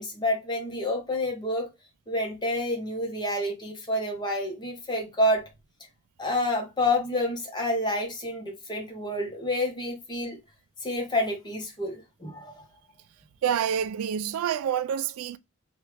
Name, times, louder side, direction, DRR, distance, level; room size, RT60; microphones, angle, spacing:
voice 1, 0.0-1.7 2.1-5.4 6.2-10.4 10.8-12.6, left 1 dB, 20° left, 0.9 m, -28 dB
voice 2, 13.4-15.4, right 9 dB, 75° right, 0.3 m, -27 dB
3.1 x 2.4 x 3.2 m
head